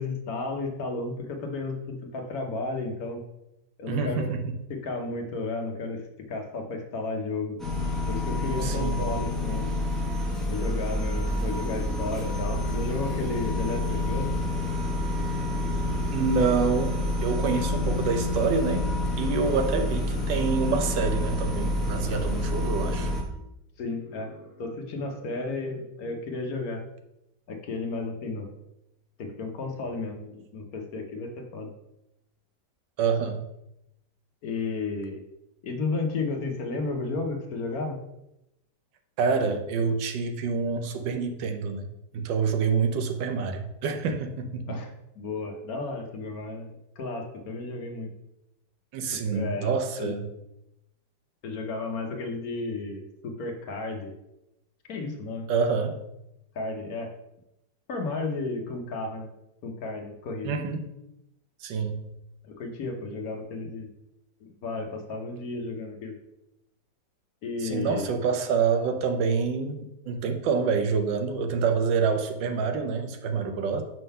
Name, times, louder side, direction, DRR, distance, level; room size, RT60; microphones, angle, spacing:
voice 1, 0.0-3.2 3.8-4.3 4.7-6.0 6.3-7.6 8.1-9.7 10.5-14.3 18.3-18.5 23.8-26.8 27.5-28.5 29.2-31.7 34.4-35.2 35.6-38.0 44.7-44.9 45.2-46.7 47.0-48.1 49.3-50.1 51.4-54.1 54.9-55.5 56.5-57.1 57.9-59.3 59.6-60.6 62.5-63.9 64.6-66.2 67.4-68.1, left 3 dB, 60° left, 4 dB, 1.2 m, -33 dB
voice 2, 3.9-4.6 8.6-9.0 16.1-18.9 19.2-23.1 33.0-33.4 39.2-41.9 42.1-44.8 48.9-50.3 55.5-56.0 60.4-60.9 61.6-62.0 67.6-73.8, right 5 dB, 80° right, 7 dB, 1.4 m, -27 dB
sound 1, 7.6-23.2, left 1 dB, ahead, 0.8 m, -28 dB
5.5 x 3.7 x 5.4 m, 0.86 s
omnidirectional pair, 1.9 m